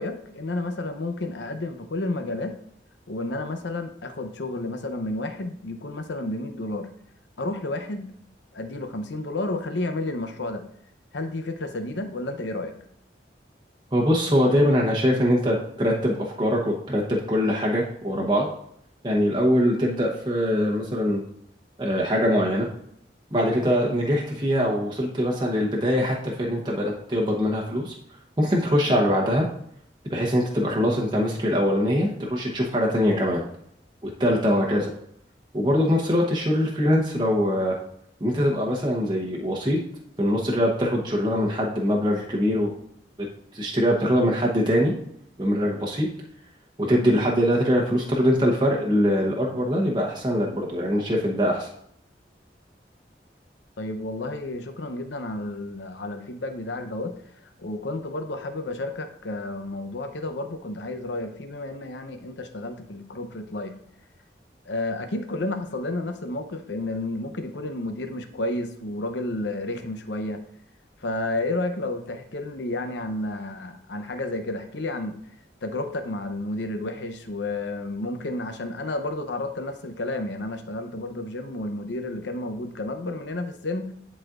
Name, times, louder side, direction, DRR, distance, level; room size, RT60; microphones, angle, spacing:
voice 1, 0.0-2.5 3.1-6.9 7.4-8.1 8.5-10.6 11.1-12.7 53.8-57.1 57.6-63.7 64.7-70.4 71.0-75.2 75.6-83.9, left 2 dB, 85° left, 7 dB, 0.8 m, -31 dB
voice 2, 13.9-18.5 19.0-21.2 21.8-22.7 23.3-27.9 28.4-29.5 30.1-33.4 34.0-34.9 35.5-37.8 38.2-39.8 40.2-42.7 43.5-44.9 45.4-46.1 46.8-51.7, equal, 25° right, -2 dB, 0.9 m, -23 dB
10.5 x 4.2 x 2.5 m, 0.70 s
head